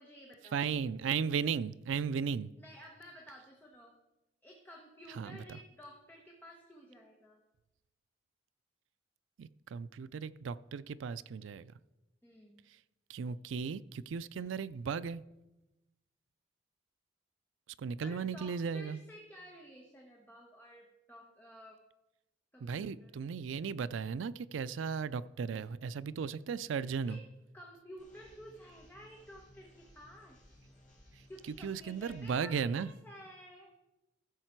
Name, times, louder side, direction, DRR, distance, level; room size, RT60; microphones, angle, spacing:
voice 1, 0.0-0.7 2.6-4.0 4.4-7.4 12.2-12.6 18.0-21.8 22.5-23.2 27.0-27.2 27.5-30.4 31.3-33.7, equal, 10° left, 0 dB, 1.1 m, -53 dB
voice 2, 0.5-2.5 5.2-5.4 9.4-11.7 13.1-15.2 17.8-19.0 22.6-27.2 31.6-32.9, right 6 dB, 80° right, 16 dB, 0.4 m, -36 dB
sound 1, 28.0-32.4, left 1 dB, 40° left, 3.4 m, -60 dB
14.5 x 6.6 x 4.5 m, 0.99 s
head